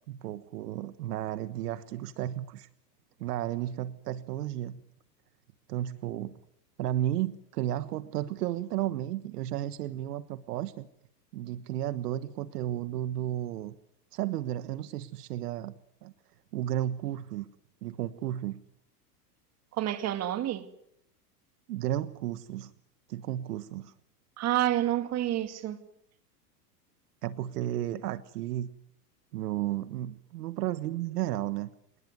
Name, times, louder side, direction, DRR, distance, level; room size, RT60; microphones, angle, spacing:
voice 1, 0.1-2.7 3.2-4.8 5.7-6.4 6.8-10.9 11.3-13.8 14.1-15.7 16.0-16.1 16.5-17.5 17.8-18.6 21.7-22.7 23.1-23.9 27.2-28.7 29.3-31.7, right 13 dB, 70° right, 1.4 m, -33 dB
voice 2, 19.7-20.7 24.4-25.8, right 13 dB, 30° right, 2.5 m, -28 dB
26.0 x 19.5 x 9.5 m
supercardioid pair, 130°, 48 cm